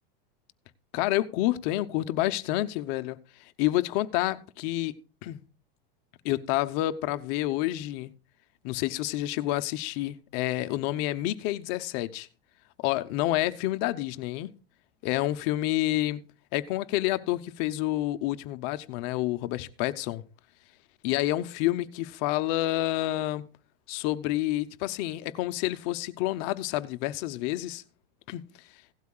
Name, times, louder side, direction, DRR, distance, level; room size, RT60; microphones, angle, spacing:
voice 1, 0.9-4.9 5.2-5.4 6.2-8.1 8.6-12.3 12.8-14.5 15.0-16.2 16.5-20.2 21.0-23.4 23.9-27.8 28.3-28.4, left 15 dB, 40° left, 0.8 m, -29 dB
16.5 x 12.0 x 2.4 m
supercardioid pair, 165°, 29 cm